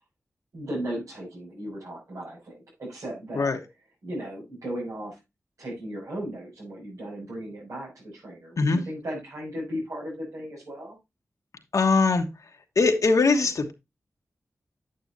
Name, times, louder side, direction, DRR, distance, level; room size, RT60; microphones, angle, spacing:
voice 1, 0.5-3.5 4.0-5.2 5.6-11.0, equal, 80° right, -7 dB, 6.5 m, -36 dB
voice 2, 11.7-12.3 12.7-13.7, left 4 dB, 75° left, 4 dB, 1.3 m, -21 dB
9.0 x 8.6 x 2.7 m, 0.23 s
wide cardioid pair, 65°, 6 cm